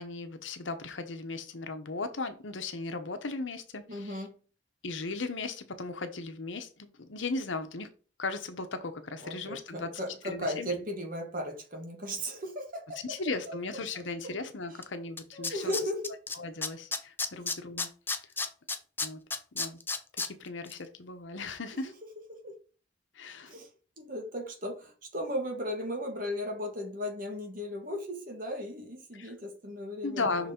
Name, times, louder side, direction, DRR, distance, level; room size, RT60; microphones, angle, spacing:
voice 1, 0.0-4.2 4.8-7.9 8.2-9.9 10.2-10.8 13.1-15.8 16.4-17.9 19.0-19.2 19.5-19.8 20.2-21.9 23.1-23.5 29.1-29.3 30.0-30.5, left 3 dB, 80° left, 8 dB, 0.9 m, -37 dB
voice 2, 3.9-4.4 9.2-13.0 13.5-13.6 14.7-14.8 15.3-16.2 17.3-17.4 22.3-22.6 23.5-23.7 24.0-30.5, equal, 45° right, 2 dB, 1.8 m, -36 dB
Tools, 14.8-14.9 15.2-16.3 16.6-20.3 20.7-20.8, left 4 dB, 10° left, 0.4 m, -31 dB
6.0 x 4.0 x 4.4 m, 0.37 s
head